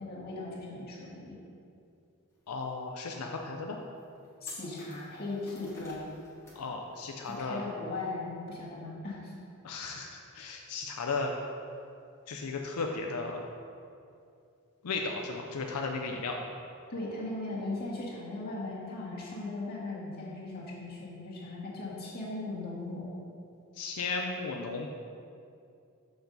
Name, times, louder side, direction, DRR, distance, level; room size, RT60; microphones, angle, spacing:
voice 1, 0.0-1.4 4.4-6.0 7.4-9.3 16.9-23.1, left 2 dB, 45° left, -6 dB, 1.6 m, -38 dB
sound 1, 2.3-2.4 2.9-3.0 3.6-3.7 4.0-6.7 6.9-7.3, left 1 dB, 10° left, 1.4 m, -55 dB
voice 2, 2.5-3.8 6.5-7.6 9.6-11.3 12.3-13.4 14.8-16.4 23.7-24.9, left 3 dB, 80° left, 2 dB, 0.5 m, -35 dB
7.0 x 5.3 x 3.9 m, 2.5 s
head